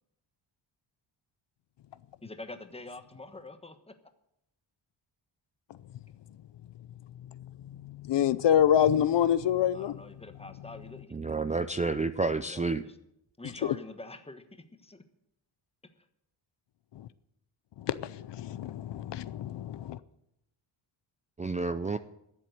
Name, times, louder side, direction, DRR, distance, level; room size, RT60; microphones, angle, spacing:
voice 1, 2.2-3.9 9.7-11.1 12.4-12.9 13.4-15.0, left 2 dB, 10° left, 1.2 m, -45 dB
voice 2, 7.8-10.0 17.0-17.1 17.8-20.0, left 10 dB, 65° left, 0.7 m, -26 dB
voice 3, 11.1-12.8 21.4-22.0, right 3 dB, 15° right, 0.4 m, -30 dB
12.5 x 7.5 x 9.3 m
cardioid pair, 110°, 47 cm